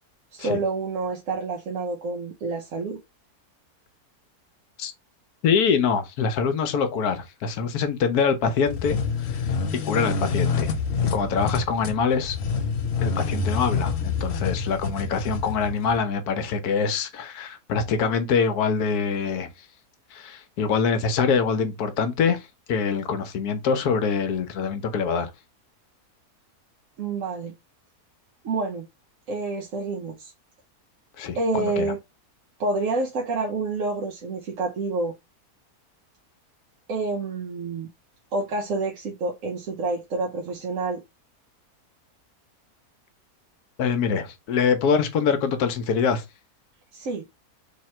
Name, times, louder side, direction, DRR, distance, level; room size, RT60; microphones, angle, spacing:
voice 1, 0.3-3.0 27.0-27.5 28.4-28.9 29.3-30.3 31.4-32.0 32.6-35.1 36.9-37.9 38.3-41.0 46.9-47.3, right 3 dB, 60° right, 1.0 m, -28 dB
voice 2, 5.4-9.5 9.8-10.7 11.1-12.4 13.0-19.5 20.1-25.3 31.2-31.9 43.8-46.2, left 6 dB, 75° left, 1.2 m, -24 dB
sound 1, 8.7-16.0, left 5 dB, 55° left, 0.7 m, -27 dB
3.5 x 2.9 x 4.2 m
omnidirectional pair, 1.7 m